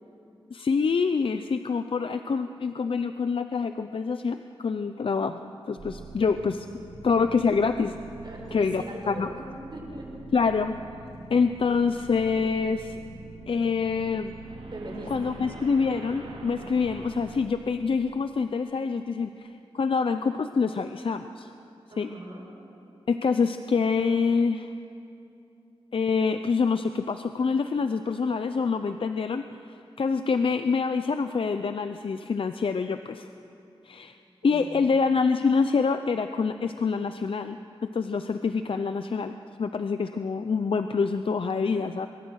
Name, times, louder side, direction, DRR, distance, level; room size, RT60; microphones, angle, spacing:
voice 1, 0.5-6.7 7.0-7.9 8.5-9.3 10.3-10.7 11.3-13.0 13.5-14.3 15.1-21.5 22.0-22.1 23.1-24.7 25.9-29.4 30.0-33.3 33.8-34.1 34.4-37.6 37.9-42.1, left 5 dB, 60° left, 9 dB, 0.6 m, -26 dB
sound 1, 5.8-17.4, right 2 dB, 75° right, 2.7 m, -44 dB
voice 2, 8.2-10.1 14.7-15.3 21.9-22.5 34.4-34.9, right 1 dB, 50° right, -2 dB, 6.0 m, -40 dB
23.0 x 22.0 x 6.4 m, 2.7 s
wide cardioid pair, 100°, 10 cm